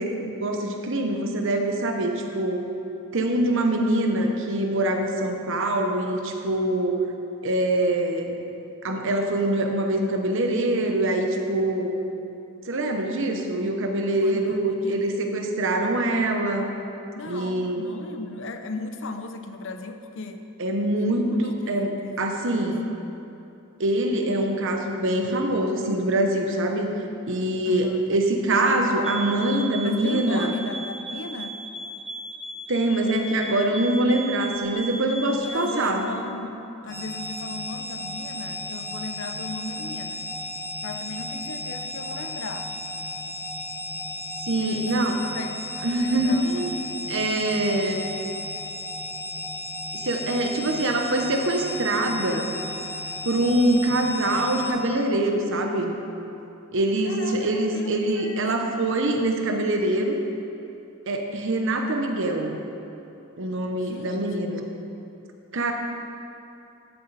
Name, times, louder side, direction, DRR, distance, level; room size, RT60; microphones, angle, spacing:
voice 1, 0.0-2.7 3.1-7.0 7.4-8.4 8.8-12.0 12.6-16.7 17.2-17.8 20.6-22.9 23.8-26.9 27.3-30.5 32.7-36.1 44.5-45.2 45.8-46.8 47.1-48.0 49.9-52.5 53.2-55.9 56.7-60.2 61.1-62.6 63.4-64.6 65.5-65.7, right 1 dB, 60° right, 3 dB, 1.1 m, -24 dB
voice 2, 14.2-15.5 17.1-20.5 21.0-21.4 21.6-22.3 22.6-22.8 27.6-28.0 29.8-31.6 35.3-40.3 40.8-42.7 44.5-45.1 45.3-45.7 45.9-46.9 47.2-47.5 57.0-58.7 63.8-64.6, left 2 dB, 65° left, 7 dB, 0.7 m, -37 dB
sound 1, 29.0-35.8, right 2 dB, ahead, 0.6 m, -37 dB
sound 2, 36.9-54.7, left 1 dB, 15° left, 2.6 m, -34 dB
14.0 x 7.4 x 4.2 m, 2.8 s
head